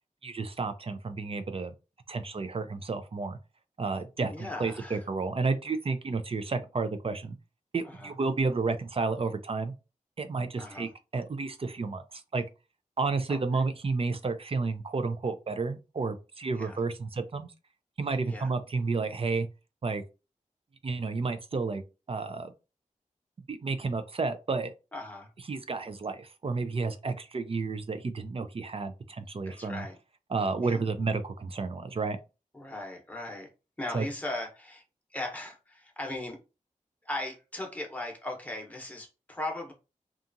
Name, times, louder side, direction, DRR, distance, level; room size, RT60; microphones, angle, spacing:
voice 1, 0.2-1.7 2.1-3.4 3.8-7.4 7.7-9.7 10.2-12.4 13.0-17.5 18.0-19.5 19.8-20.0 20.8-21.8 22.1-22.5 23.5-24.7 25.5-29.9 30.3-32.2 33.9-34.0, right 4 dB, 45° right, 0.4 m, -31 dB
voice 2, 4.3-5.0 7.8-8.1 10.6-10.9 16.5-16.8 18.3-18.5 24.9-25.3 29.4-30.0 30.6-30.9 32.5-33.5 33.8-34.8 35.1-36.4 37.0-39.7, left 1 dB, 10° left, 0.9 m, -38 dB
2.7 x 2.4 x 2.5 m
wide cardioid pair, 80°, 14 cm